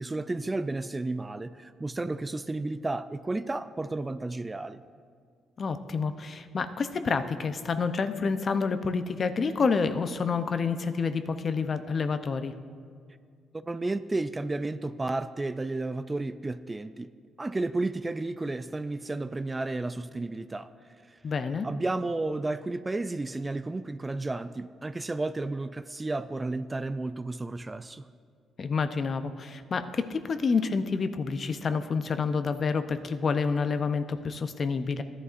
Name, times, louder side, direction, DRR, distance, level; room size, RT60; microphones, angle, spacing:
voice 1, 0.0-4.8 13.6-17.1 17.4-20.7 21.1-21.2 21.4-28.0, right 2 dB, 20° right, 12 dB, 0.3 m, -32 dB
voice 2, 5.6-12.5 21.2-21.7 28.6-35.0, left 5 dB, 45° left, 10 dB, 0.5 m, -28 dB
14.0 x 11.0 x 2.5 m, 2.1 s
cardioid pair, 90°, 0 cm